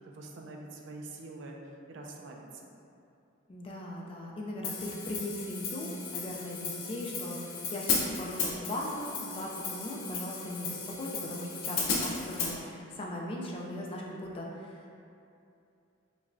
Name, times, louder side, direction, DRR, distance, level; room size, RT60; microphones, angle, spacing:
voice 1, 0.1-1.6 1.9-2.7, right 2 dB, 60° right, 0 dB, 0.4 m, -45 dB
voice 2, 3.5-15.0, left 1 dB, 25° left, -2 dB, 0.3 m, -39 dB
Hi-hat, 4.6-12.5, left 4 dB, 80° left, 0.6 m, -35 dB
5.1 x 2.1 x 2.5 m, 2.6 s
head